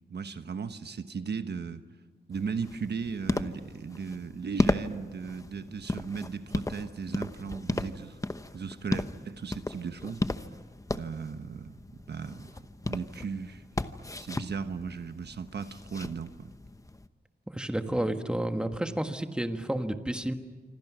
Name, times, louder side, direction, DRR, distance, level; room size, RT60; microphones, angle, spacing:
voice 1, 0.1-1.8 2.3-8.2 8.5-10.2 10.9-13.6 14.2-16.5 17.9-18.0, right 5 dB, 75° right, 9 dB, 1.2 m, -37 dB
sound 1, 2.3-17.1, left 2 dB, 20° left, 0.9 m, -35 dB
voice 2, 17.5-20.3, right 1 dB, 5° right, 7 dB, 1.5 m, -31 dB
27.5 x 25.5 x 6.2 m, 1.4 s
wide cardioid pair, 120°, 18 cm